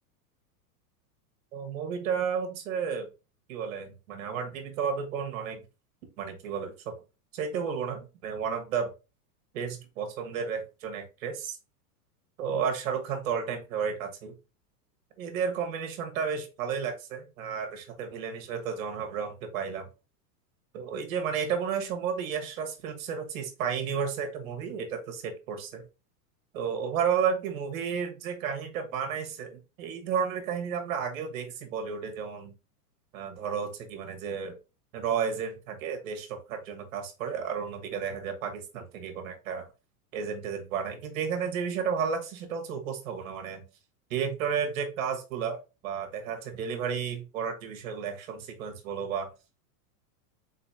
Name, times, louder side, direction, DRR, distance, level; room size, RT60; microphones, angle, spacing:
voice 1, 1.5-3.1 3.5-5.6 6.2-6.9 7.3-8.9 9.5-11.6 12.4-14.3 15.2-19.9 20.7-25.8 26.5-32.5 33.1-34.5 34.9-39.6 40.1-43.6 44.1-49.3, right 7 dB, 55° right, 5 dB, 1.4 m, -32 dB
4.3 x 4.1 x 2.8 m, 0.29 s
supercardioid pair, 160°, 48 cm